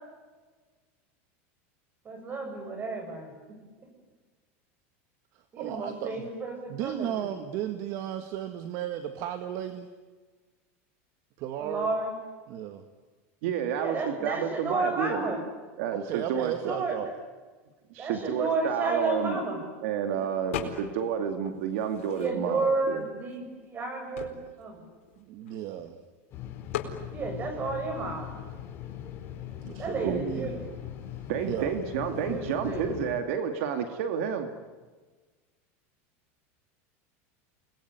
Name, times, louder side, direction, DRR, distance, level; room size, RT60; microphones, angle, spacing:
voice 1, 2.0-3.3 5.5-7.3 11.6-12.1 13.7-15.4 16.3-17.0 18.0-19.6 22.1-24.9 27.1-28.3 29.8-30.6 31.6-31.7 32.1-32.9, right 3 dB, 25° right, 6 dB, 7.5 m, -32 dB
voice 2, 5.6-6.3 6.7-9.9 11.4-11.9 12.5-12.8 15.9-17.1 25.2-26.0 29.6-30.5 31.4-31.8, right 11 dB, 50° right, 8 dB, 1.9 m, -34 dB
voice 3, 13.4-15.2 15.8-16.7 17.9-19.4 19.8-23.0 30.0-30.5 31.3-34.5, right 8 dB, 70° right, 7 dB, 2.3 m, -30 dB
sound 1, 20.5-21.1 21.4-22.7 23.3-23.4 23.6-25.9 26.7-27.0, left 10 dB, 80° left, 4.4 m, -38 dB
sound 2, 26.3-33.2, left 10 dB, 35° left, 5.3 m, -40 dB
29.5 x 21.0 x 9.6 m, 1.4 s
supercardioid pair, 145°, 7 cm